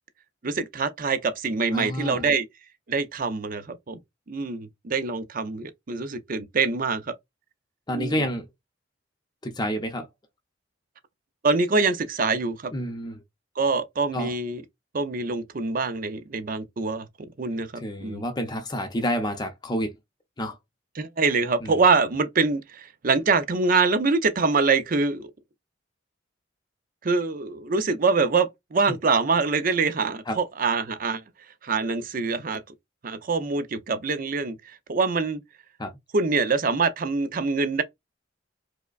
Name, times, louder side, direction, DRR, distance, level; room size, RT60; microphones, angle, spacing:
voice 1, 0.4-2.5 2.9-4.0 4.3-7.1 7.9-8.2 11.4-12.7 13.6-14.6 14.9-17.1 17.4-18.2 21.0-25.3 27.0-31.2 31.6-32.6 33.0-34.6 34.9-35.4 36.1-37.8, right 4 dB, 45° right, 0.6 m, -24 dB
voice 2, 1.7-2.2 7.9-8.5 9.4-10.1 12.7-13.2 14.1-14.3 17.8-19.9 20.4-20.6 21.6-21.7 28.9-29.0 30.3-30.4 35.8-35.9, equal, 20° left, 0.6 m, -29 dB
4.8 x 2.1 x 2.3 m
head